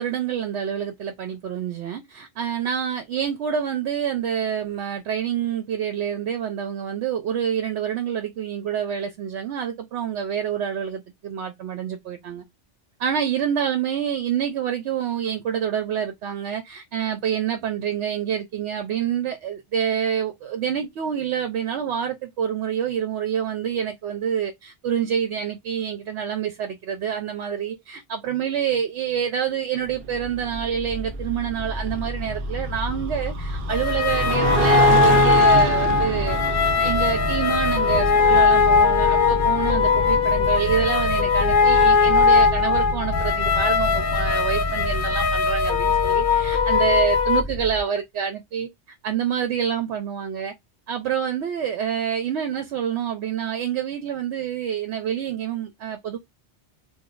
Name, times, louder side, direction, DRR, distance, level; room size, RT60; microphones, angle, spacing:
voice 1, 0.0-12.4 13.0-36.4 36.8-48.7 49.0-50.5 50.9-56.2, right 8 dB, 75° right, 0.9 m, -27 dB
sound 1, 29.9-47.8, left 1 dB, 20° left, 0.8 m, -30 dB
sound 2, 29.9-40.5, right 7 dB, 60° right, 0.6 m, -29 dB
sound 3, 33.7-47.4, left 5 dB, 55° left, 0.6 m, -20 dB
3.1 x 2.3 x 3.7 m
omnidirectional pair, 1.2 m